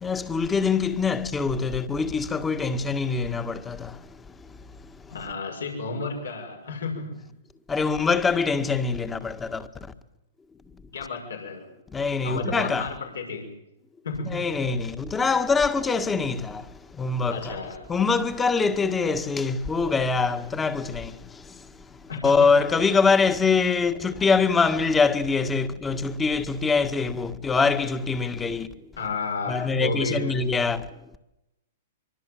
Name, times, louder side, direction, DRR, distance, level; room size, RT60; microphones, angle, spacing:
voice 1, 0.0-5.0 7.7-9.9 11.9-12.9 14.2-17.6 17.9-28.8 29.5-30.9, left 4 dB, 15° left, 1.8 m, -24 dB
voice 2, 5.1-7.2 7.9-8.1 10.9-11.7 12.2-13.5 14.0-14.4 17.3-17.9 22.1-22.7 29.0-30.4, left 4 dB, 80° left, 6.4 m, -32 dB
25.0 x 23.5 x 7.9 m
hypercardioid pair, 115°, 0 cm